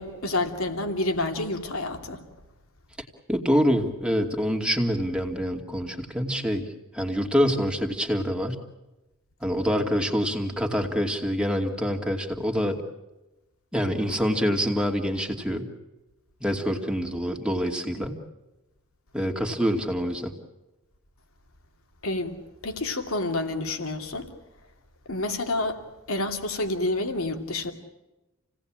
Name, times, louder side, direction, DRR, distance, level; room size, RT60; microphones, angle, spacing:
voice 1, 0.0-2.2 22.0-22.4 22.6-24.3 25.1-25.8 26.1-27.7, left 2 dB, 70° left, 6 dB, 2.8 m, -28 dB
voice 2, 3.3-6.6 6.9-8.6 9.4-12.8 13.7-15.6 16.4-18.1 19.1-20.3, equal, 5° right, 3 dB, 2.5 m, -26 dB
29.0 x 18.0 x 8.9 m, 1.0 s
head